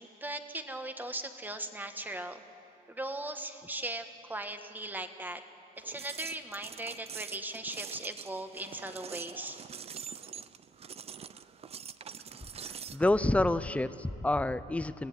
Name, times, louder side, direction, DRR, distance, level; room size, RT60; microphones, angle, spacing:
voice 1, 0.0-2.4 2.9-5.4 5.8-9.6, right 1 dB, 10° right, 7 dB, 1.7 m, -39 dB
sound 1, 5.8-13.1, right 7 dB, 35° right, 0.7 m, -45 dB
voice 2, 12.9-15.1, left 2 dB, 10° left, 14 dB, 0.7 m, -28 dB
26.0 x 17.0 x 9.7 m, 2.7 s
cardioid pair, 110°, 17 cm